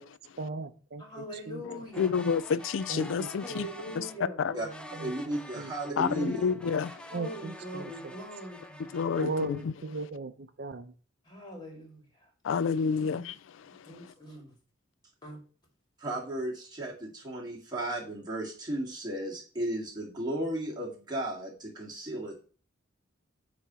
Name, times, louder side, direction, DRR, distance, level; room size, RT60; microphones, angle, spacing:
voice 1, 0.4-1.6 2.9-3.6 4.9-6.0 7.1-8.1 9.2-10.9, right 3 dB, 55° right, 0.7 m, -38 dB
voice 2, 1.0-2.3 3.4-4.9 7.1-9.0 11.3-12.3 12.9-13.2 13.8-14.5 15.2-15.4, equal, 20° left, 2.1 m, -42 dB
voice 3, 1.7-3.7 4.0-4.1 4.4-4.5 6.0-7.0 8.9-9.3 12.4-13.4, left 6 dB, 70° left, 0.4 m, -29 dB
sound 1, 1.9-4.2 4.7-9.6, left 1 dB, 5° left, 0.5 m, -48 dB
voice 4, 5.0-6.5 16.0-22.4, right 1 dB, 20° right, 2.0 m, -34 dB
8.2 x 3.0 x 5.5 m
head